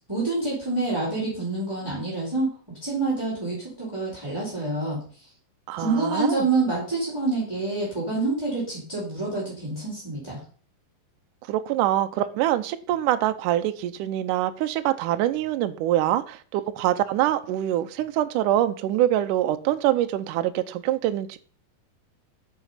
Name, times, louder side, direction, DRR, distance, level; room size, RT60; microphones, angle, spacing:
voice 1, 0.1-2.5 2.8-5.0 5.8-10.4, right 3 dB, 5° right, 4.3 m, -27 dB
voice 2, 5.7-6.5 11.5-21.4, right 13 dB, 80° right, 2.0 m, -24 dB
11.0 x 6.2 x 5.6 m
omnidirectional pair, 4.3 m